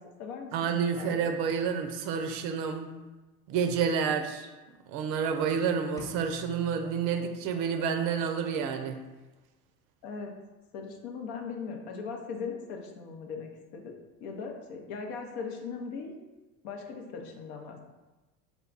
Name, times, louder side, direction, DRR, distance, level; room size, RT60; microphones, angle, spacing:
voice 1, 0.0-1.3 10.0-10.3 10.7-16.2 16.6-17.8, left 5 dB, 60° left, 3 dB, 0.7 m, -39 dB
voice 2, 0.5-2.9 3.5-4.5 4.9-9.0, right 6 dB, 50° right, 6 dB, 0.5 m, -29 dB
sound 1, 6.0-7.9, left 2 dB, 10° left, 0.4 m, -47 dB
3.4 x 2.3 x 3.8 m, 1.1 s
hypercardioid pair, 75°, 43 cm